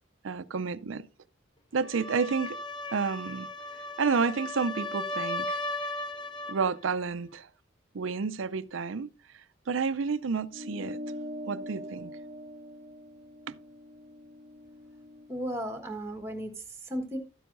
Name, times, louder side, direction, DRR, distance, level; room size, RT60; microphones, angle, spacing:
voice 1, 0.2-1.0 1.7-2.6 2.9-3.5 4.0-5.6 6.5-7.5 7.9-9.1 9.7-11.0 11.5-12.1 13.5-13.6, right 5 dB, 70° right, 0.5 m, -30 dB
sound 1, 1.8-6.7, left 1 dB, 20° left, 0.7 m, -36 dB
sound 2, 10.5-15.3, equal, 30° right, 0.7 m, -42 dB
voice 2, 15.3-17.2, equal, 15° right, 1.4 m, -35 dB
12.5 x 9.2 x 2.6 m
head